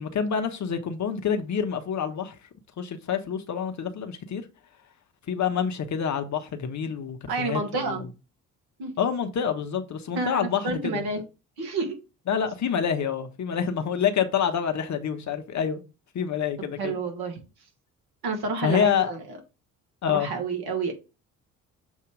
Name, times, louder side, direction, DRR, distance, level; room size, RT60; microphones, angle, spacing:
voice 1, 0.0-2.3 2.8-4.4 5.3-8.0 9.0-11.0 12.3-15.8 16.1-17.0 18.6-19.1 20.0-20.3, left 7 dB, 40° left, 1.0 m, -27 dB
voice 2, 7.3-8.1 8.8-8.9 10.1-11.2 11.6-12.0 16.8-17.4 18.2-19.2 20.1-20.9, right 3 dB, 60° right, 1.9 m, -29 dB
7.1 x 2.8 x 4.9 m
figure-of-eight pair, 50°, 43 cm